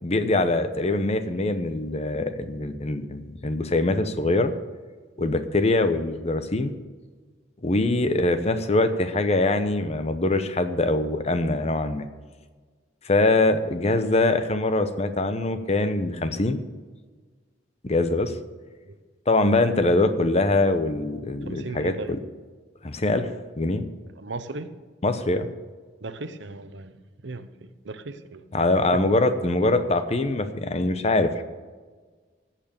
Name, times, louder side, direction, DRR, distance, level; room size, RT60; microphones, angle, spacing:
voice 1, 0.0-4.5 5.2-6.7 7.6-12.1 13.0-16.6 17.8-18.4 19.3-22.2 22.8-23.3 23.6-23.8 25.0-25.5 28.5-31.4, left 2 dB, 35° left, 10 dB, 0.8 m, -23 dB
voice 2, 21.5-22.1 24.2-24.7 26.0-26.9 27.2-28.4 28.9-29.0, right 3 dB, 70° right, 11 dB, 0.8 m, -36 dB
15.5 x 5.9 x 7.0 m, 1.4 s
head